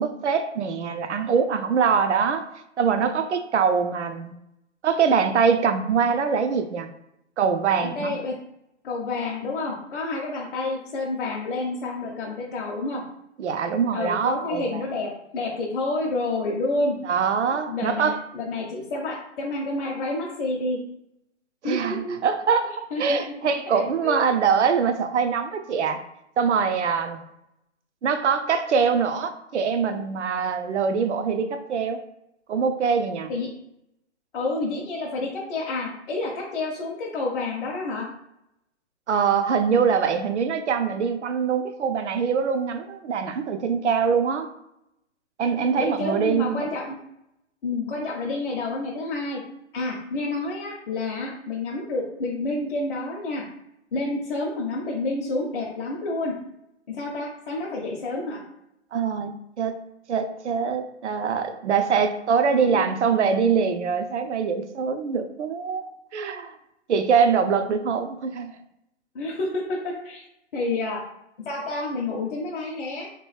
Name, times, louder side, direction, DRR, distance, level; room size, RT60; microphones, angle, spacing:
voice 1, 0.0-2.4 2.8-4.4 4.8-6.9 7.4-8.1 13.4-14.8 17.0-18.2 21.6-26.0 26.4-27.2 28.0-32.0 32.5-33.3 39.1-44.5 45.4-46.7 58.9-59.8 60.1-66.5 66.9-68.5, right 6 dB, 75° right, 8 dB, 0.5 m, -23 dB
voice 2, 7.8-8.3 8.8-13.0 13.9-17.0 17.7-20.8 21.6-22.2 22.7-23.3 23.7-24.3 33.3-33.5 34.3-38.0 45.8-47.0 47.6-49.4 49.7-53.5 53.9-56.4 56.9-58.4 62.6-62.8 69.1-70.2 70.5-71.0 71.5-73.1, left 2 dB, 50° left, -2 dB, 0.6 m, -29 dB
3.0 x 2.1 x 3.2 m, 0.81 s
figure-of-eight pair, 135°, 35 cm